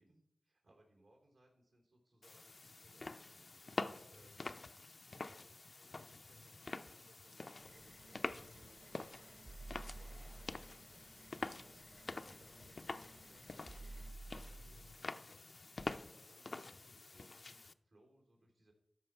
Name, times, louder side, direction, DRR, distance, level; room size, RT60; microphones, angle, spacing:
voice 1, 0.0-4.4 4.9-18.7, right 1 dB, 85° right, -1 dB, 3.0 m, -69 dB
sound 1, 2.2-17.7, left 3 dB, 60° left, 0.4 m, -47 dB
sound 2, 7.6-14.1, right 2 dB, 35° right, 0.7 m, -62 dB
sound 3, 9.4-10.7 12.6-12.7 13.7-15.0 16.8-16.9 17.4-17.5, right 2 dB, 70° right, 2.3 m, -51 dB
13.0 x 5.3 x 4.5 m, 0.84 s
cardioid pair, 40°, 0 cm